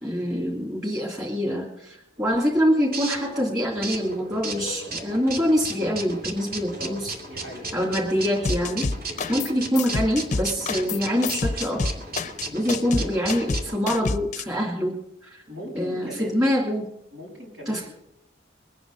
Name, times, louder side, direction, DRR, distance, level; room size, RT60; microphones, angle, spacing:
voice 1, 0.0-7.1 7.7-8.9 9.3-11.9 12.5-14.9 15.2-15.4 15.7-16.9 17.7-17.9, equal, 20° right, -3 dB, 3.0 m, -25 dB
sound 1, 2.2-13.8, right 2 dB, 50° right, 2.5 m, -35 dB
voice 2, 6.8-7.7 9.1-9.4 12.4-13.1 15.4-16.5 17.1-17.9, equal, 85° right, -5 dB, 6.0 m, -40 dB
sound 2, 8.4-9.5 9.8-14.4, left 3 dB, 40° left, 0.5 m, -28 dB
22.5 x 9.2 x 4.9 m, 0.83 s
head